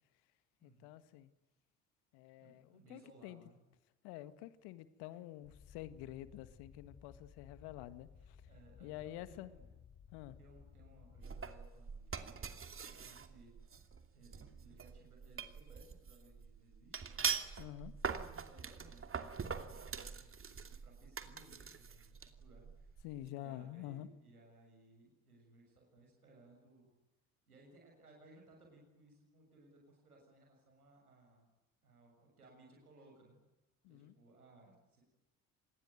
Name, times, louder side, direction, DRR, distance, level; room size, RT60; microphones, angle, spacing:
voice 1, 0.6-1.3 2.1-3.4 4.0-8.4 8.8-9.5 10.1-10.4 17.6-17.9 23.0-24.1 33.8-34.1, left 14 dB, 65° left, 13 dB, 1.9 m, -48 dB
voice 2, 2.4-3.6 8.5-9.7 10.4-13.8 14.1-17.7 18.1-23.1 23.3-26.9 27.5-31.5 31.8-33.4 33.9-35.1, right 2 dB, 90° right, 0 dB, 7.0 m, -63 dB
sound 1, 5.4-11.6, left 7 dB, 40° left, 2.3 m, -59 dB
sound 2, 11.2-23.3, right 6 dB, 30° right, 2.7 m, -43 dB
27.5 x 20.5 x 9.3 m, 1.0 s
hypercardioid pair, 60°, 43 cm